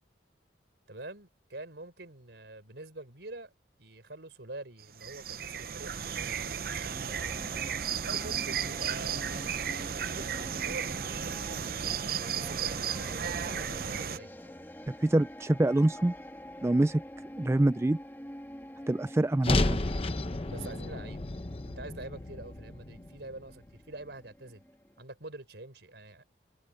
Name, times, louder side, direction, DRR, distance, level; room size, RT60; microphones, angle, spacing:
voice 1, 0.9-3.5 3.8-7.4 8.1-9.4 9.9-14.6 14.9-15.0 20.5-21.3 21.6-24.6 25.0-26.2, right 2 dB, 70° right, 4.2 m, -46 dB
sound 1, 4.8-14.2, right 7 dB, 55° right, 0.7 m, -34 dB
sound 2, 6.8-25.0, equal, 10° left, 2.1 m, -47 dB
voice 2, 15.0-16.1 16.6-17.0 17.4-18.0 18.9-19.8, right 1 dB, 15° right, 0.3 m, -25 dB
sound 3, 19.4-23.7, left 2 dB, 30° left, 0.8 m, -32 dB
head